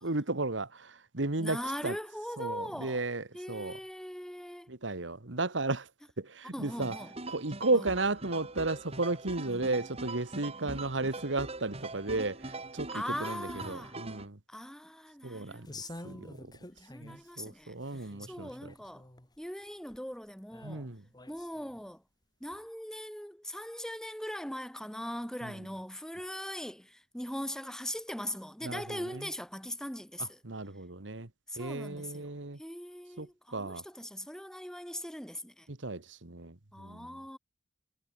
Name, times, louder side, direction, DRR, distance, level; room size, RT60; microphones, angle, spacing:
voice 1, 0.0-2.0 2.4-3.8 4.7-5.9 6.2-7.0 7.3-14.4 15.2-16.5 17.0-18.7 20.6-21.0 25.4-25.5 28.6-29.3 30.2-31.3 31.6-32.6 33.2-33.8 35.7-37.2, right 2 dB, 80° right, 1.8 m, -34 dB
voice 2, 1.4-3.0 3.3-4.7 6.5-7.1 7.7-7.9 9.5-9.7 12.9-14.0 14.5-15.7 16.0-16.5 16.8-19.0 19.4-20.9 21.3-22.0 22.4-30.4 31.5-32.3 32.6-35.7 36.7-37.4, equal, 5° left, 3.2 m, -40 dB
sound 1, 6.7-14.3, right 2 dB, 35° right, 5.7 m, -42 dB
sound 2, 15.6-17.3 17.7-19.4 19.9-20.0 20.5-21.8 22.5-22.6, left 2 dB, 20° left, 2.6 m, -49 dB
head